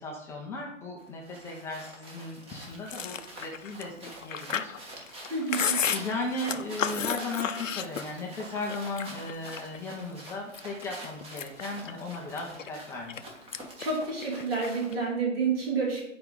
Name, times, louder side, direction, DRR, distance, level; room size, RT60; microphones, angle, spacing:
voice 1, 0.0-4.7 5.1-5.6 5.9-13.2, left 2 dB, 5° left, -1 dB, 0.5 m, -36 dB
sound 1, 1.0-15.1, right 1 dB, 15° right, 1.4 m, -46 dB
Chewing mastication, 2.9-8.3 8.7-9.8 10.3-10.8 11.2-13.2 13.5-13.8 14.1-14.9, left 7 dB, 80° left, 0.7 m, -33 dB
voice 2, 5.3-5.8 13.8-16.0, right 4 dB, 50° right, -3 dB, 2.9 m, -29 dB
10.0 x 4.7 x 3.8 m, 0.76 s
figure-of-eight pair, 125°, 38 cm